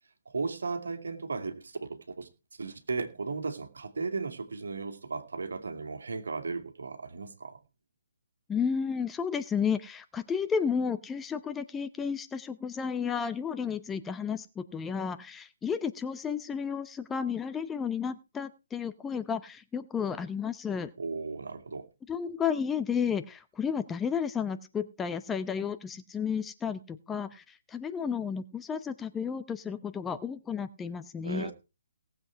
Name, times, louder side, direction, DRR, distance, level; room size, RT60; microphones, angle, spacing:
voice 1, 0.3-2.3 2.6-7.6 21.0-21.9 31.2-31.5, right 4 dB, 70° right, 2.4 m, -35 dB
voice 2, 8.5-20.9 22.1-31.5, left 6 dB, 10° left, 0.8 m, -32 dB
18.5 x 7.8 x 4.7 m
figure-of-eight pair, 140°, 0 cm